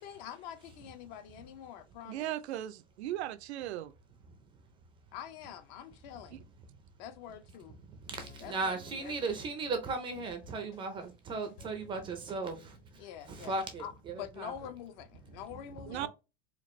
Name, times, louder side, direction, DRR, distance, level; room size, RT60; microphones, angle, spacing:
voice 1, 0.0-2.3 5.1-6.5 7.0-7.8 8.4-9.1 13.0-16.1, left 9 dB, 45° left, 0.6 m, -46 dB
voice 2, 2.1-3.9 15.9-16.1, right 13 dB, 85° right, 0.5 m, -37 dB
voice 3, 7.9-13.0 13.2-14.5 15.5-16.1, right 3 dB, 15° right, 0.4 m, -37 dB
sound 1, 8.1-13.0, left 4 dB, 90° left, 2.2 m, -56 dB
4.3 x 2.4 x 3.0 m
supercardioid pair, 150°, 32 cm